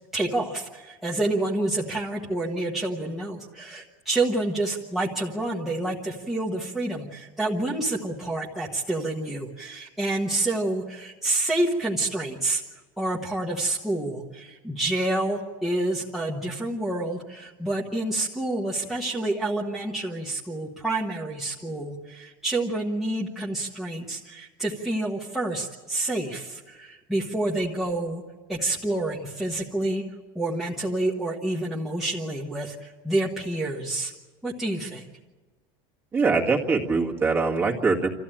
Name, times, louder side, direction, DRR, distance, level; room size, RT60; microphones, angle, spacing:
voice 1, 0.1-12.6 13.0-28.2 28.5-30.0 30.3-34.1 34.4-35.1, right 2 dB, 5° right, -5 dB, 1.3 m, -28 dB
voice 2, 36.1-38.1, right 4 dB, 20° right, -1 dB, 2.0 m, -23 dB
27.0 x 14.5 x 8.9 m, 1.3 s
cardioid pair, 175°, 12 cm